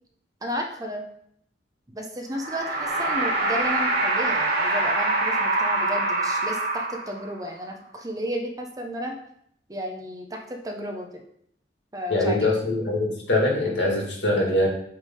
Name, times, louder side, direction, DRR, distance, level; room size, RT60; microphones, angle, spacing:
voice 1, 0.4-1.0 1.9-9.2 9.7-11.1 11.9-12.3, equal, 20° right, 2 dB, 0.8 m, -33 dB
sound 1, 2.3-7.4, right 2 dB, 60° right, 1.3 m, -24 dB
voice 2, 12.1-14.7, left 1 dB, 90° left, -2 dB, 2.1 m, -23 dB
7.8 x 3.6 x 3.7 m, 0.70 s
head